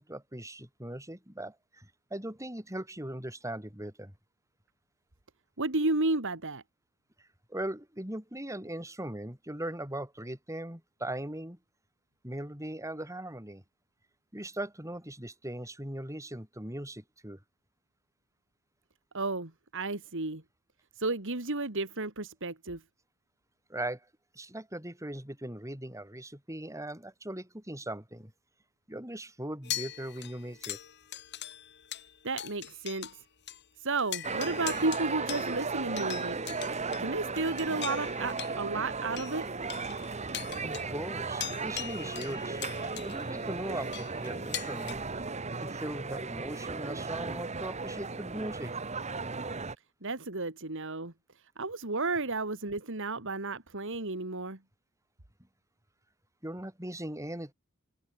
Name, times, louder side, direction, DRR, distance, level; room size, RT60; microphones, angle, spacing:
voice 1, 0.0-4.1 7.5-11.6 12.2-13.6 14.3-17.4 23.7-24.1 24.3-28.3 28.9-30.8 40.6-45.0 45.6-48.7 56.4-57.5, right 1 dB, 15° right, 8.0 m, -39 dB
voice 2, 5.6-6.6 19.1-20.4 21.0-22.8 32.2-33.1 33.8-36.4 37.0-39.5 50.0-51.1 51.6-54.6, right 3 dB, 60° right, 2.9 m, -32 dB
sound 1, 29.6-33.2 33.5-33.6 34.0-44.9, left 11 dB, 55° left, 2.9 m, -42 dB
sound 2, 34.2-49.7, right 4 dB, 30° right, 1.5 m, -36 dB
open air
head